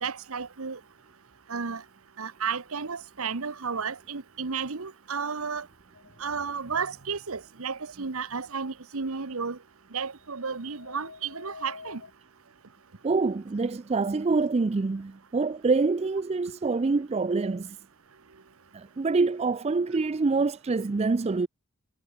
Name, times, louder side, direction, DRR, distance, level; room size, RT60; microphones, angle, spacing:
voice 1, 0.0-0.8 1.5-1.8 2.2-5.6 6.2-9.6 9.9-12.0, right 5 dB, 70° right, 1.1 m, -33 dB
sound 1, 5.9-6.7 10.0-12.1, left 4 dB, 60° left, 1.3 m, -48 dB
voice 2, 13.0-17.8 18.7-21.5, right 3 dB, 30° right, 0.4 m, -26 dB
head